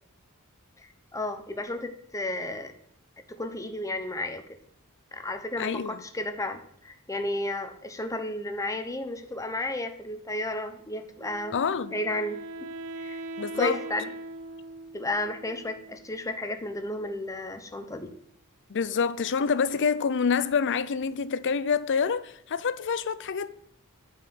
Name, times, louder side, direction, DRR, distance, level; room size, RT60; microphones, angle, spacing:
voice 1, 0.8-2.7 3.3-4.4 5.1-11.5 11.9-12.7 13.0-13.2 13.5-14.1 14.9-18.1, left 1 dB, 15° left, 0.8 m, -33 dB
voice 2, 5.6-6.0 11.5-12.0 13.4-13.8 18.7-23.6, left 6 dB, 55° left, 0.5 m, -27 dB
Wind instrument woodwind instrument, 11.2-16.2, right 2 dB, 65° right, 0.5 m, -41 dB
9.4 x 4.9 x 7.9 m
head